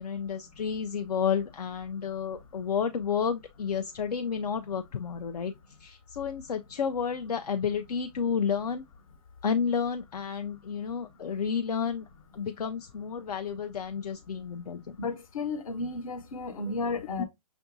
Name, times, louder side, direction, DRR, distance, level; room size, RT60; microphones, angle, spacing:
voice 1, 0.0-5.5 5.8-8.8 9.4-12.1 12.3-15.0 17.2-17.3, left 6 dB, 75° left, 0.5 m, -31 dB
voice 2, 15.0-17.2, left 3 dB, 60° left, 1.0 m, -33 dB
6.0 x 2.5 x 2.5 m
hypercardioid pair, 130°, 20 cm